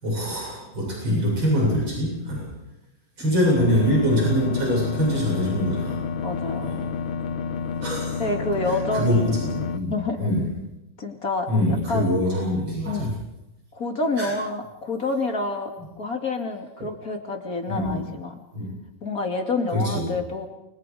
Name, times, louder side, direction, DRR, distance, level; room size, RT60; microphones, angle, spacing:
voice 1, 0.0-2.6 3.2-6.0 6.6-6.8 7.8-8.2 8.6-10.5 11.5-13.1 14.2-14.3 17.7-18.0 18.5-18.7 19.7-20.1, equal, 90° right, -3 dB, 8.9 m, -24 dB
sound 1, 3.6-9.8, left 6 dB, 90° left, 1.9 m, -29 dB
voice 2, 6.2-6.7 8.2-9.4 9.7-10.2 11.0-12.1 12.9-13.1 13.7-15.7 16.0-18.4 19.0-20.5, left 3 dB, 45° left, 4 dB, 3.0 m, -28 dB
30.0 x 24.0 x 5.1 m, 0.90 s
omnidirectional pair, 2.1 m